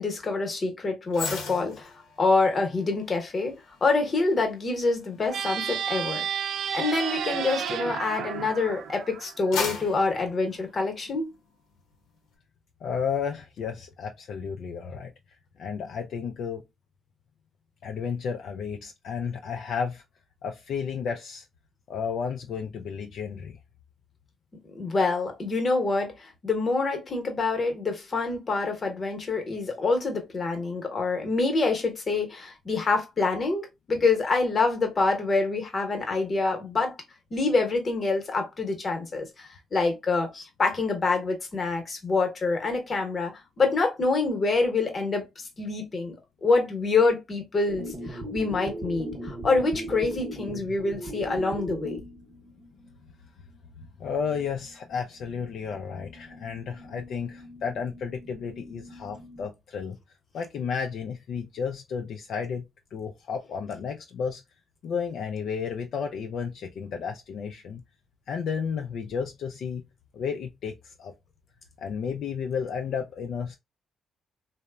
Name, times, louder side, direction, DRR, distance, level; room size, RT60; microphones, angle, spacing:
voice 1, 0.0-1.9 2.2-3.6 3.8-6.2 6.7-11.3 24.7-36.9 37.3-43.3 43.6-46.2 46.4-52.0, left 3 dB, 40° left, 0.9 m, -26 dB
sound 1, 1.1-8.5 9.0-11.3 11.7-11.9, left 4 dB, 90° left, 0.7 m, -39 dB
sound 2, 5.3-9.7, right 8 dB, 75° right, 0.3 m, -32 dB
voice 2, 12.8-15.1 15.6-16.6 17.8-20.0 20.4-21.5 21.9-23.6 53.8-60.0 60.3-62.6 62.9-64.4 64.8-67.8 68.3-69.8 70.1-71.1 71.8-73.5, left 6 dB, 70° left, 0.3 m, -32 dB
sound 3, 47.7-53.0 53.5-53.6 53.8-53.9 54.1-54.9 55.2-59.5, equal, 30° right, 0.7 m, -39 dB
3.0 x 2.0 x 2.2 m
cardioid pair, 90°, 0 cm